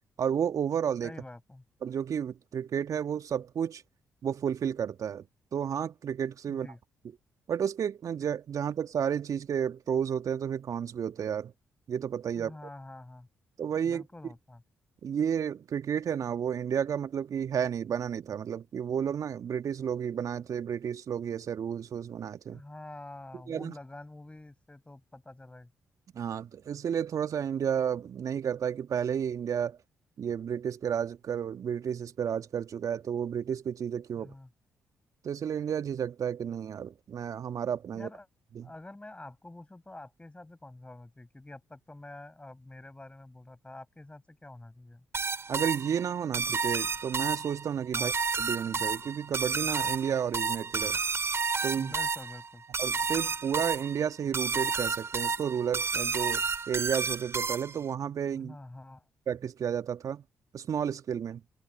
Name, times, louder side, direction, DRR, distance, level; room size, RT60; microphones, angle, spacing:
voice 1, 0.2-1.1 1.8-3.8 4.2-5.2 5.5-6.7 7.5-11.5 11.9-12.5 13.6-14.0 15.0-22.6 23.5-23.7 26.1-29.8 30.2-34.3 35.2-38.1 38.5-38.7 45.5-51.0 51.6-51.9 52.8-58.6 59.3-60.2 60.5-61.4, right 8 dB, 55° right, 1.5 m, -32 dB
voice 2, 1.0-1.6 6.5-6.8 12.3-13.3 13.8-14.6 22.5-25.7 34.2-34.5 37.9-38.3 38.6-45.1 48.0-48.1 51.7-52.6 58.3-59.0, left 2 dB, 15° left, 7.2 m, -47 dB
sound 1, 45.1-57.9, right 5 dB, 40° right, 4.6 m, -31 dB
hypercardioid pair, 40°, 7 cm